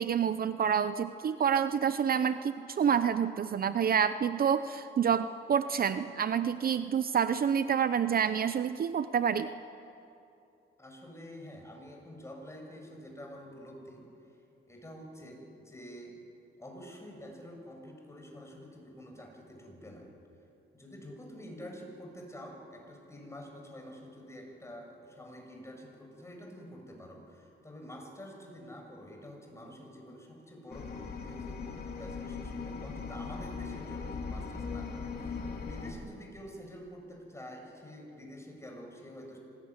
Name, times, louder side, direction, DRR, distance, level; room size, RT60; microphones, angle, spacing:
voice 1, 0.0-9.5, right 7 dB, 50° right, 12 dB, 0.8 m, -28 dB
voice 2, 10.8-14.1 14.7-16.2 16.6-20.1 20.7-31.7 31.9-39.4, equal, 15° left, 2 dB, 7.4 m, -48 dB
sound 1, 30.7-35.9, left 4 dB, 50° left, 3.6 m, -39 dB
25.5 x 20.0 x 9.8 m, 2.7 s
cardioid pair, 90°, 20 cm